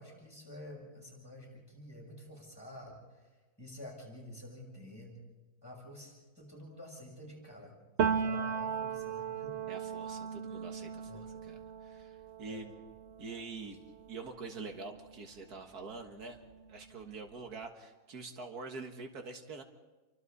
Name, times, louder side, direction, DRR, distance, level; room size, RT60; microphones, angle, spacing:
voice 1, 0.0-3.3 3.6-5.1 5.6-9.6 11.1-11.3 12.4-12.6, left 1 dB, 15° left, -2 dB, 7.7 m, -49 dB
Piano, 8.0-15.6 16.0-17.5, right 7 dB, 50° right, 1.1 m, -38 dB
voice 2, 9.7-12.7 13.2-13.8 14.1-16.4 16.7-19.6, right 4 dB, 85° right, 4 dB, 2.2 m, -45 dB
29.5 x 25.0 x 4.2 m, 1.2 s
omnidirectional pair, 1.6 m